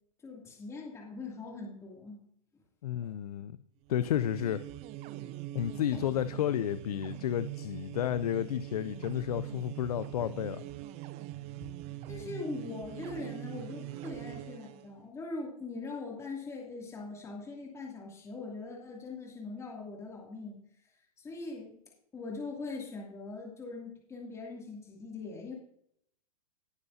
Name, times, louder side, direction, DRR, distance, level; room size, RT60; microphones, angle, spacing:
voice 1, 0.2-2.2 3.0-3.1 5.9-6.0 12.1-20.6 21.2-21.7 22.1-25.5, left 3 dB, 15° left, -2 dB, 2.6 m, -41 dB
voice 2, 2.8-3.6 3.9-4.6 5.5-10.6, left 11 dB, 80° left, 14 dB, 0.5 m, -31 dB
sound 1, 3.9-14.9, right 15 dB, 35° right, 0.6 m, -43 dB
18.0 x 6.9 x 2.8 m, 0.69 s
hypercardioid pair, 130°, 19 cm